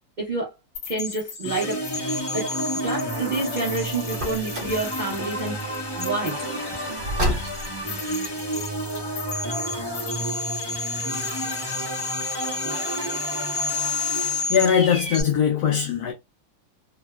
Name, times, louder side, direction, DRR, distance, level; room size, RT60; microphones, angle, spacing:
voice 1, 0.2-0.5 0.9-2.5 2.8-6.4 6.9-7.1, right 3 dB, 65° right, 0.4 m, -29 dB
sound 1, 0.7-15.2, left 4 dB, 45° left, 1.1 m, -32 dB
sound 2, 1.4-14.9, right 1 dB, 25° left, 0.5 m, -31 dB
Car, 4.1-4.9 7.0-7.9, equal, 50° right, 0.9 m, -28 dB
voice 2, 14.5-16.1, left 8 dB, 70° left, 1.0 m, -20 dB
3.2 x 2.0 x 2.2 m
omnidirectional pair, 2.1 m